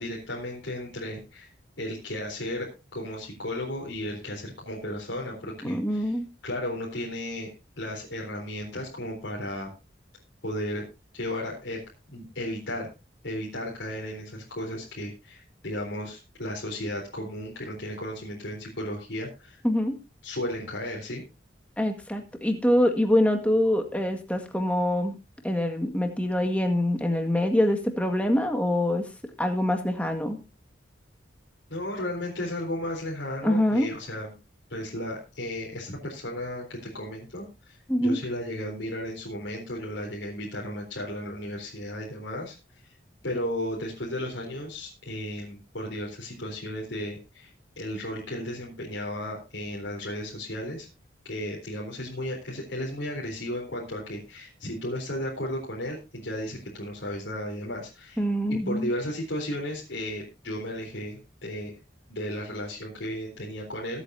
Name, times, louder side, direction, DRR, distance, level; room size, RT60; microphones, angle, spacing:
voice 1, 0.0-1.5 1.8-6.2 6.4-9.7 10.4-10.8 11.1-11.8 12.1-12.9 13.2-19.6 20.2-21.2 31.7-34.3 34.7-42.6 43.2-47.5 47.8-50.9 51.2-58.2 58.5-61.7 62.1-64.0, left 1 dB, 75° left, -3 dB, 4.0 m, -34 dB
voice 2, 5.6-6.3 19.6-19.9 21.8-25.2 25.4-29.0 29.4-30.4 33.4-33.9 37.9-38.2 58.2-58.9, left 1 dB, 5° left, 5 dB, 1.8 m, -24 dB
22.0 x 8.2 x 2.8 m, 0.29 s
head